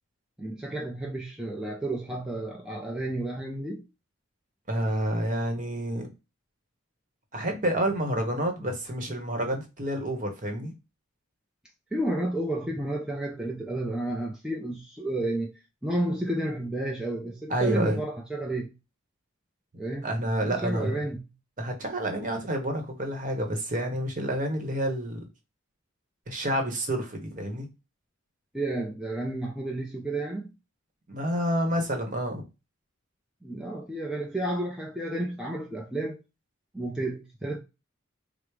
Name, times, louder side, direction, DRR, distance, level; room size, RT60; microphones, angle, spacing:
voice 1, 0.4-3.9 11.9-18.7 19.8-20.1 20.4-21.2 28.5-30.6 33.4-36.2 36.7-37.6, right 1 dB, 5° right, 0.4 m, -31 dB
voice 2, 4.7-6.1 7.3-10.7 17.5-18.0 20.0-21.0 21.6-25.2 26.3-27.7 31.1-32.4, right 1 dB, 40° right, 0.9 m, -29 dB
4.9 x 2.0 x 4.6 m
head